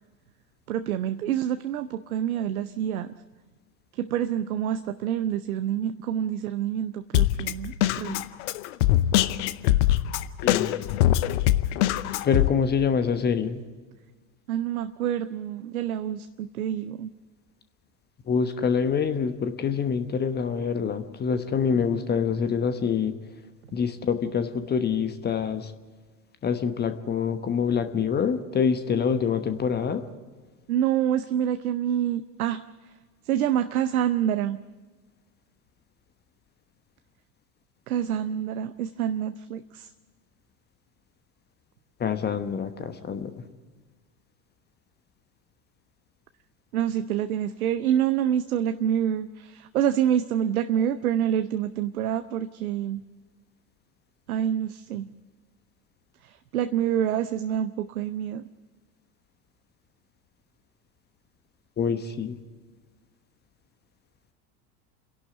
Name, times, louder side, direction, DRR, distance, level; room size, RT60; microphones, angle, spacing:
voice 1, 0.7-3.1 3.9-8.3 14.5-17.1 30.7-32.9 33.2-34.6 37.9-39.9 46.7-53.0 54.3-55.1 56.2-58.4, right 10 dB, 60° right, 11 dB, 0.8 m, -27 dB
Drum kit, 7.1-12.5, left 14 dB, 45° left, 0.8 m, -23 dB
voice 2, 10.4-10.7 12.2-13.6 18.3-23.1 23.7-25.7 26.4-30.0 42.0-43.3 61.8-62.4, left 6 dB, 20° left, 10 dB, 1.1 m, -26 dB
30.0 x 11.5 x 8.0 m, 1.4 s
figure-of-eight pair, 80°, 48 cm